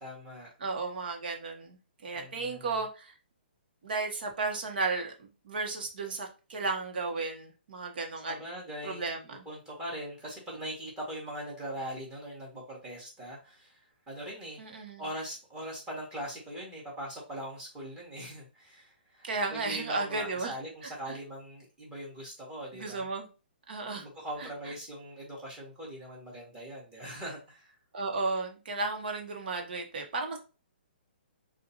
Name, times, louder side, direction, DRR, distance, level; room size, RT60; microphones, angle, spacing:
voice 1, 0.0-0.5 2.1-2.8 8.3-9.1 9.5-14.6 15.0-23.1 24.0-27.8, equal, 15° right, -4 dB, 2.3 m, -41 dB
voice 2, 0.6-3.1 3.8-8.4 8.8-9.4 14.6-15.1 19.2-20.6 22.7-23.3 23.7-24.1 24.4-24.5 27.9-30.4, right 3 dB, 60° right, 3 dB, 1.2 m, -34 dB
6.2 x 2.5 x 2.9 m, 0.33 s
hypercardioid pair, 135°, 6 cm